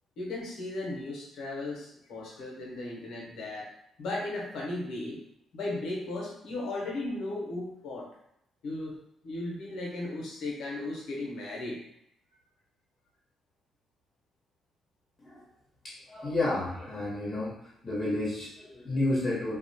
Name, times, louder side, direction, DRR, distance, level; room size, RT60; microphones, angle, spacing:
voice 1, 0.2-3.7 4.0-5.2 5.5-8.2 8.6-9.0 9.2-11.8, left 2 dB, 80° left, -3 dB, 0.7 m, -36 dB
voice 2, 15.8-17.5 17.8-19.6, left 2 dB, 25° left, -8 dB, 0.9 m, -31 dB
2.3 x 2.1 x 2.7 m, 0.76 s
cardioid pair, 90°, 0 cm